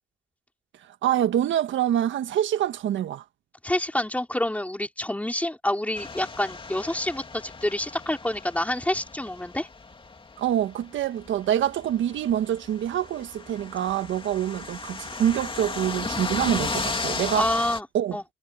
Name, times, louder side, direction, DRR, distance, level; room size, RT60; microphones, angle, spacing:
voice 1, 1.0-3.2 10.4-17.5 17.9-18.2, right 11 dB, 75° right, 1.5 m, -26 dB
voice 2, 3.6-9.7 17.4-17.9 18.1-18.2, left 1 dB, 5° left, 4.5 m, -27 dB
sound 1, 5.9-17.8, left 3 dB, 25° left, 2.6 m, -35 dB
cardioid pair, 90°, 20 cm